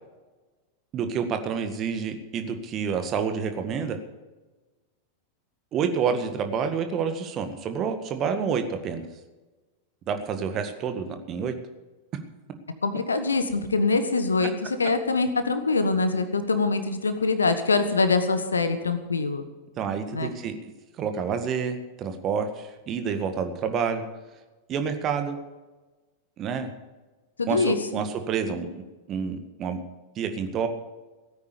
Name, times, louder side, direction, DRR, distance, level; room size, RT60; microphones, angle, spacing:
voice 1, 0.9-4.0 5.7-9.0 10.1-11.5 19.8-20.7 21.0-24.0 24.7-25.4 26.4-26.7 27.5-28.8 29.1-29.8 30.1-30.7, right 6 dB, 30° right, 7 dB, 1.8 m, -28 dB
voice 2, 12.8-19.4 20.1-20.3 27.4-28.0, left 3 dB, 75° left, 10 dB, 1.5 m, -24 dB
16.5 x 9.4 x 6.9 m, 1.2 s
figure-of-eight pair, 90°, 0 cm